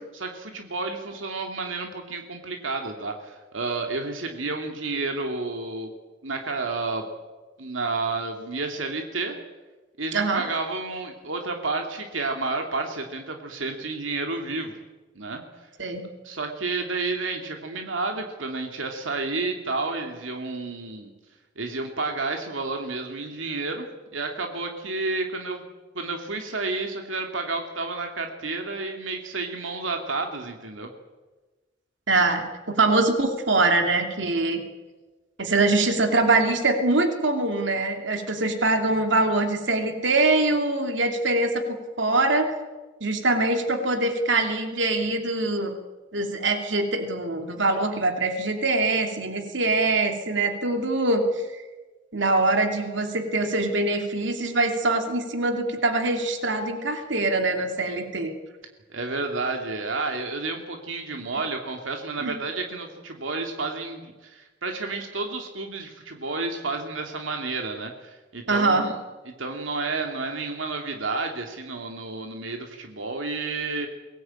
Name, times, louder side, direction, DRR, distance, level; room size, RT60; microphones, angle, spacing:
voice 1, 0.1-5.9 6.2-7.0 7.6-9.4 10.0-14.8 15.1-15.4 16.2-21.1 21.6-23.9 24.1-25.6 25.9-30.9 58.9-68.9 69.3-73.9, right 3 dB, 90° right, 3 dB, 2.6 m, -31 dB
voice 2, 10.1-10.4 15.8-16.0 32.1-34.6 35.4-42.6 43.0-45.7 46.1-51.2 52.1-58.3 62.2-62.4 68.5-68.9, right 2 dB, 70° right, 5 dB, 2.8 m, -23 dB
23.0 x 18.5 x 8.9 m, 1.2 s
head